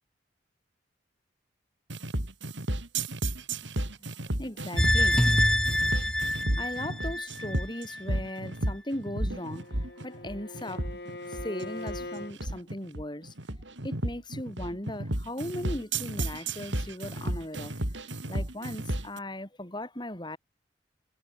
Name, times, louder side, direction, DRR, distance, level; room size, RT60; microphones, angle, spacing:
sound 1, 1.9-19.2, right 1 dB, 80° right, 4.0 m, -33 dB
voice 1, 4.4-5.2 6.5-10.9 11.3-13.3 13.8-20.4, left 1 dB, 25° left, 3.8 m, -38 dB
sound 2, 4.8-8.0 8.3-8.4, left 1 dB, 5° left, 0.3 m, -25 dB
Bowed string instrument, 9.2-12.4, left 2 dB, 60° left, 3.1 m, -41 dB
head